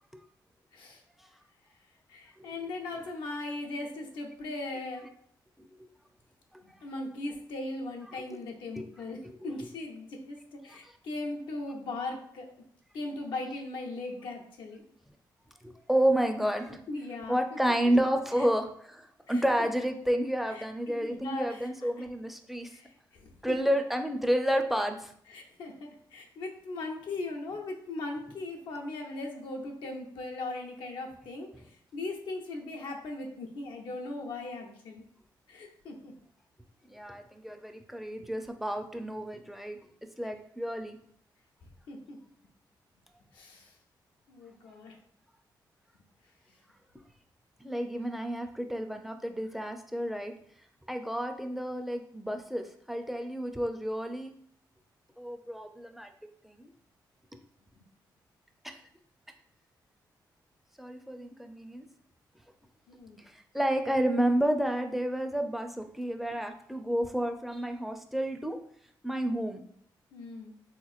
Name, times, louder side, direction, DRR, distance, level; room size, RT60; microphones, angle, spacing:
voice 1, 2.1-5.2 6.6-12.5 12.9-14.8 16.7-17.4 18.4-18.5 19.3-19.4 20.6-20.7 21.0-21.7 22.7-23.6 25.3-35.0 35.5-36.1 41.9-42.2 43.3-43.7 44.3-45.0 62.9-63.2 70.1-70.5, left 2 dB, 85° left, 1 dB, 0.6 m, -39 dB
voice 2, 5.6-5.9 6.5-6.8 8.7-8.9 9.2-9.5 10.7-10.9 15.6-16.8 17.3-22.7 23.4-25.1 36.9-39.8 40.2-41.0 47.6-50.3 50.9-54.3 55.2-56.1 56.4-56.7 58.6-58.8 60.8-61.9 63.2-68.6 69.0-69.6, right 1 dB, ahead, 5 dB, 0.4 m, -30 dB
3.6 x 3.0 x 2.4 m, 0.63 s
cardioid pair, 75°, 8 cm